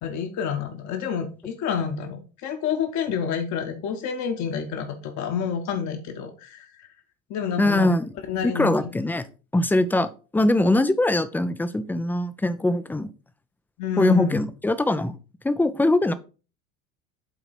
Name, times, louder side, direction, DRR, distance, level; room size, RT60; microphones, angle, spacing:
voice 1, 0.0-6.9 7.3-7.9 8.3-9.0 13.8-14.4, left 7 dB, 40° left, 1.1 m, -29 dB
voice 2, 7.6-8.1 8.5-9.2 9.5-13.1 14.0-15.2 15.4-16.1, left 2 dB, 5° left, 0.4 m, -22 dB
8.1 x 3.9 x 4.3 m
figure-of-eight pair, 70°, 42 cm